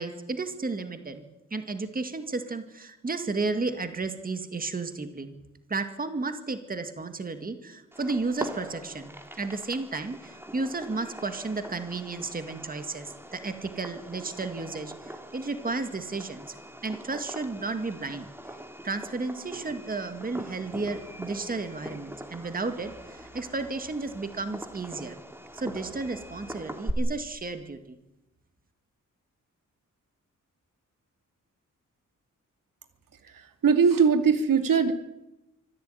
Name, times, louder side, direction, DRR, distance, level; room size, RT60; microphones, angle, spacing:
voice 1, 0.0-5.4 5.7-16.6 16.8-18.3 18.8-25.2 25.5-28.0, right 3 dB, 25° right, 8 dB, 2.0 m, -33 dB
Fireworks, 7.9-26.9, right 1 dB, 5° right, 2.2 m, -42 dB
voice 2, 33.6-34.9, right 6 dB, 85° right, 7 dB, 2.6 m, -20 dB
25.5 x 15.5 x 9.3 m, 0.93 s
wide cardioid pair, 170°, 32 cm